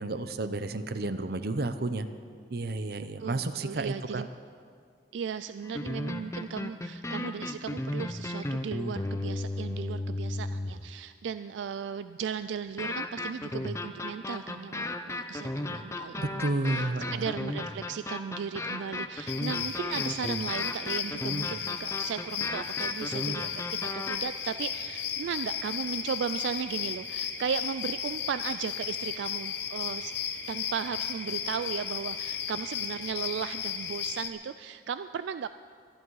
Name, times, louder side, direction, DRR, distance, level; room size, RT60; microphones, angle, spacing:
voice 1, 0.0-2.1 2.5-4.3 16.2-17.3, right 2 dB, 55° right, 11 dB, 0.7 m, -31 dB
voice 2, 3.0-4.3 5.1-14.9 15.3-30.1 30.5-35.5, right 7 dB, 80° right, 12 dB, 0.3 m, -36 dB
sound 1, 5.6-10.9 12.8-24.2, left 2 dB, 15° left, 0.6 m, -34 dB
sound 2, 19.3-34.3, left 8 dB, 65° left, 1.1 m, -35 dB
24.0 x 11.0 x 4.8 m, 2.2 s
head